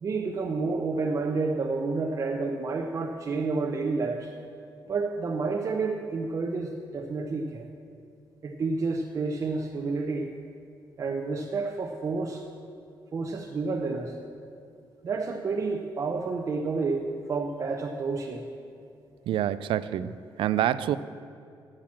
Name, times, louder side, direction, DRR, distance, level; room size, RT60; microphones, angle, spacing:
voice 1, 0.0-4.3 4.9-7.7 8.4-10.3 11.0-12.4 13.1-14.1 15.0-17.0 17.3-18.5, right 4 dB, 40° right, 2 dB, 0.6 m, -29 dB
voice 2, 19.3-21.0, right 11 dB, 80° right, 15 dB, 0.4 m, -27 dB
8.6 x 7.5 x 7.4 m, 2.5 s
cardioid pair, 145°, 9 cm